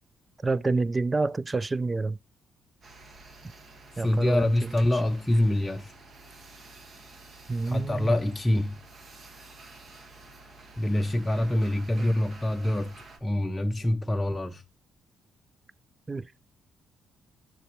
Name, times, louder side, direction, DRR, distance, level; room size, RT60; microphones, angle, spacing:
voice 1, 0.4-2.2 4.0-4.5 4.9-5.0 7.5-8.1 12.0-12.1 16.1-16.2, right 3 dB, 25° right, 0.4 m, -28 dB
sound 1, 2.8-13.2, right 2 dB, 45° right, 1.6 m, -50 dB
voice 2, 3.9-5.9 7.7-8.8 10.8-12.9 13.2-14.6, left 1 dB, 10° left, 0.7 m, -25 dB
8.2 x 6.1 x 3.1 m
cardioid pair, 90°, 0 cm